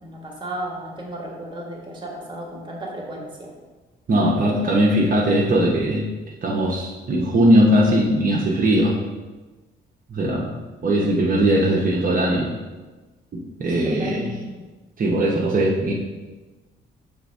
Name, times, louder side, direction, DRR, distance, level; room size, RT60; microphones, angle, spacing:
voice 1, 0.0-3.5 13.8-14.6, right 1 dB, 25° right, -2 dB, 1.7 m, -34 dB
voice 2, 4.1-6.1 6.4-9.0 10.1-10.5 10.8-12.5 13.3-14.4 15.0-15.9, right 1 dB, 45° right, -4 dB, 1.0 m, -19 dB
5.9 x 3.4 x 5.4 m, 1.2 s
cardioid pair, 90°, 20 cm